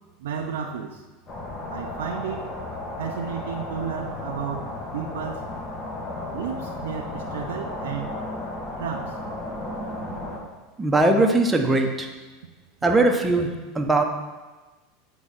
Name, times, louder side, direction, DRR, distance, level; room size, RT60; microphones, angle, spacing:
voice 1, 0.2-1.0 1.7-2.5 3.0-5.5 6.3-8.1 8.8-9.2, right 7 dB, 80° right, 3 dB, 0.5 m, -32 dB
sound 1, 1.3-10.4, left 2 dB, 35° left, 1.4 m, -34 dB
voice 2, 10.8-12.1 12.8-13.5 13.7-14.0, right 2 dB, 15° right, 3 dB, 0.8 m, -20 dB
7.6 x 3.6 x 4.3 m, 1.2 s
hypercardioid pair, 100°, 0 cm